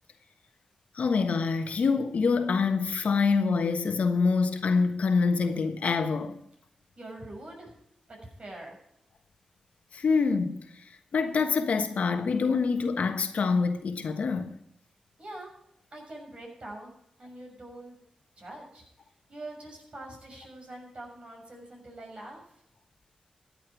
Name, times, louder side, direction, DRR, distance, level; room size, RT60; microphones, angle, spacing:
voice 1, 0.9-6.4 9.9-10.6 11.1-14.5, left 4 dB, 70° left, 1.3 m, -26 dB
voice 2, 7.0-7.7 8.1-8.8 15.2-15.5 15.9-16.9 17.2-18.0 18.4-18.8 19.3-22.6, right 1 dB, 50° right, 6.4 m, -44 dB
14.5 x 8.9 x 4.8 m
supercardioid pair, 40°, 2 cm